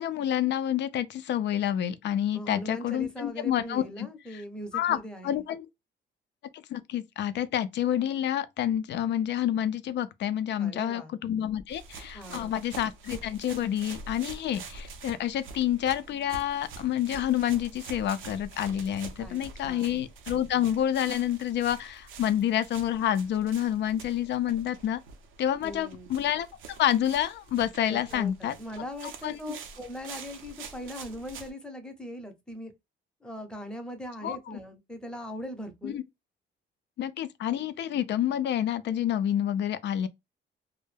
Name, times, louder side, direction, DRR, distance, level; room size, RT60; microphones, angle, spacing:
voice 1, 0.0-4.1 4.3-4.4 4.7-5.0 5.2-5.7 6.5-25.0 25.4-26.5 26.8-28.6 29.2-29.4 34.2-34.6 35.8-36.0 37.0-40.1, left 11 dB, 60° left, 0.4 m, -28 dB
voice 2, 2.3-5.4 10.6-11.2 12.1-12.5 19.2-20.0 25.6-26.1 27.9-32.7 33.2-36.0, equal, 5° left, 0.7 m, -40 dB
sound 1, 11.7-31.5, right 4 dB, 80° right, 0.6 m, -46 dB
2.2 x 2.1 x 3.1 m
cardioid pair, 90°, 20 cm